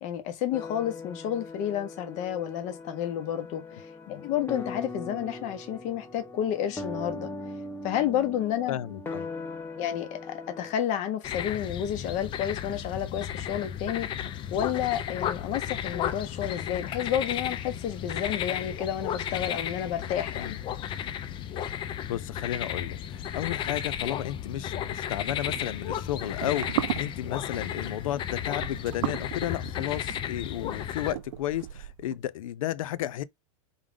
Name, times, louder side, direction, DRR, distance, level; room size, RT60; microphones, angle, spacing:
voice 1, 0.0-7.3 7.8-8.8 9.8-14.1 14.5-20.6, left 10 dB, 45° left, 1.2 m, -30 dB
sound 1, 0.5-10.7, left 3 dB, 10° left, 1.1 m, -40 dB
voice 2, 8.7-9.3 20.3-20.6 21.8-33.2, left 13 dB, 75° left, 0.6 m, -33 dB
sound 2, 11.2-31.1, left 9 dB, 30° left, 0.5 m, -34 dB
sound 3, 25.1-32.2, right 14 dB, 70° right, 0.5 m, -37 dB
3.7 x 3.4 x 3.5 m
hypercardioid pair, 120°, 18 cm